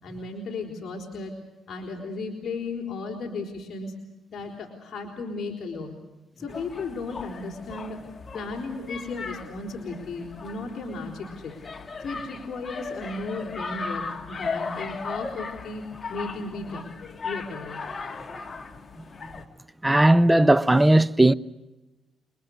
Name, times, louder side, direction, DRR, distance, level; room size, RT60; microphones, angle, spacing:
voice 1, 0.0-1.3 1.7-3.9 4.3-5.9 6.4-8.0 8.3-11.5 12.0-15.8 16.1-17.0 17.2-17.8, left 3 dB, 50° left, 4.3 m, -35 dB
sound 1, 6.5-19.5, left 4 dB, 35° left, 2.1 m, -37 dB
voice 2, 19.8-21.3, right 1 dB, 10° right, 0.8 m, -17 dB
29.5 x 22.0 x 6.6 m
cardioid pair, 90°, 0 cm